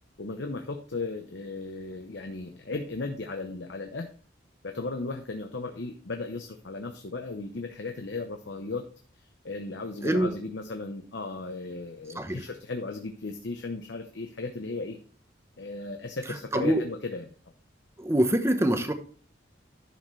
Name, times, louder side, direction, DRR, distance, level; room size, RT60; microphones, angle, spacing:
voice 1, 0.2-4.1 4.6-8.9 9.2-15.0 15.6-17.3, left 3 dB, 65° left, 5 dB, 0.9 m, -36 dB
voice 2, 10.0-10.4 12.1-12.4 16.5-16.8 18.0-18.9, right 1 dB, 15° right, 8 dB, 1.0 m, -24 dB
11.0 x 6.7 x 3.2 m, 0.43 s
head